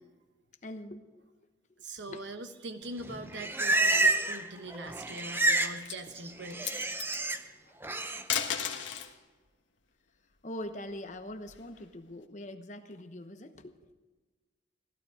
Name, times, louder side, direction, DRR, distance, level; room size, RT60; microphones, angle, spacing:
voice 1, 0.6-1.3 2.1-2.3 4.7-4.8 7.7-7.8 10.4-13.8, left 1 dB, 40° left, 7 dB, 1.0 m, -43 dB
voice 2, 1.8-6.7, right 2 dB, 70° right, 7 dB, 1.1 m, -42 dB
Livestock farm animals working animals, 3.0-4.5 4.7-5.8 6.1-7.4 7.8-8.2, right 2 dB, 10° right, 0.6 m, -28 dB
sound 1, 4.9-5.4 5.8-6.0 6.5-7.2 8.1-9.2 10.6-11.8, left 8 dB, 80° left, 1.4 m, -35 dB
16.0 x 12.0 x 4.9 m, 1.3 s
head